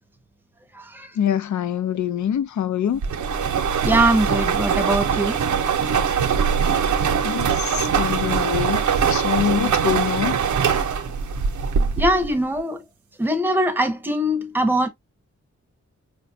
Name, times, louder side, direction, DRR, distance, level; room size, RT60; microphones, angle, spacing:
voice 1, 1.2-3.0 7.2-10.4, left 9 dB, 75° left, 0.5 m, -24 dB
sound 1, 3.0-12.3, right 6 dB, 80° right, 0.6 m, -22 dB
voice 2, 3.8-5.4 12.0-12.8 13.2-14.9, right 1 dB, 5° right, 0.7 m, -21 dB
4.9 x 2.2 x 2.6 m
wide cardioid pair, 170°, 29 cm